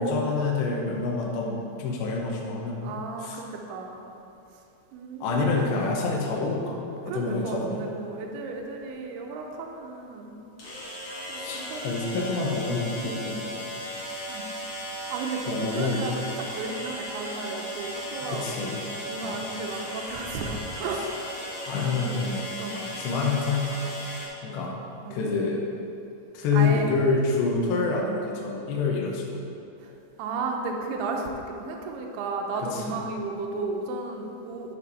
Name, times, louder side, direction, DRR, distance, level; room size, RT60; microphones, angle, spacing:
voice 1, 0.0-3.4 5.2-7.8 11.4-13.3 13.6-13.7 15.5-16.1 18.2-18.8 19.2-19.5 21.7-22.4 22.7-23.9 24.4-24.8 25.1-25.7 26.3-29.4 32.6-33.0, left 4 dB, 75° left, -2 dB, 2.4 m, -27 dB
voice 2, 2.8-4.0 4.9-5.5 7.0-10.3 11.3-12.0 13.0-13.5 14.3-14.5 15.1-21.2 22.6-22.8 25.1-25.2 26.5-26.9 29.8-29.9 30.2-34.8, right 3 dB, 80° right, 2 dB, 2.5 m, -34 dB
sound 1, 8.5-8.6 10.6-24.3, equal, 55° left, 1.6 m, -36 dB
11.0 x 4.9 x 4.1 m, 2.8 s
omnidirectional pair, 5.1 m